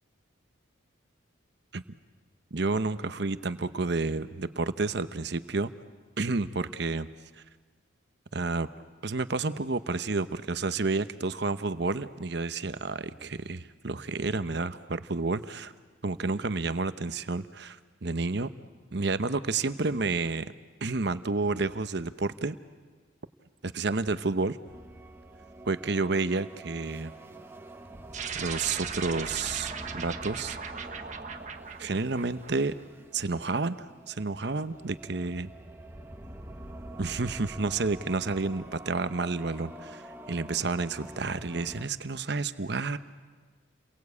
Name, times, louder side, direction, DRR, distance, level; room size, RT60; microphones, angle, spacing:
voice 1, 2.5-5.7 6.2-7.1 8.3-8.7 9.0-15.7 16.0-18.5 18.9-20.5 20.8-22.6 23.6-24.6 25.7-27.1 28.3-30.6 31.8-32.7 33.1-33.8 34.1-35.5 37.0-40.0 40.3-43.0, right 3 dB, 55° right, 12 dB, 0.9 m, -30 dB
sound 1, 24.7-41.9, right 1 dB, 10° right, 1.2 m, -46 dB
sound 2, 28.1-32.8, right 6 dB, 40° right, 1.4 m, -38 dB
30.0 x 22.5 x 8.4 m, 1.4 s
head